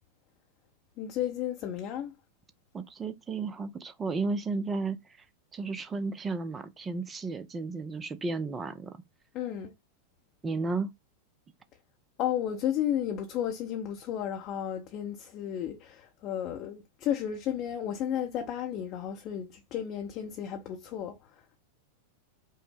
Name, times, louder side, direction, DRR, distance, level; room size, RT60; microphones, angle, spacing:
voice 1, 1.0-2.1 9.3-9.7 12.2-21.2, left 10 dB, 35° left, 0.6 m, -33 dB
voice 2, 2.7-5.3 5.5-9.0 10.4-10.9, right 3 dB, 20° right, 0.4 m, -33 dB
5.3 x 2.1 x 3.4 m
figure-of-eight pair, 90°, 0 cm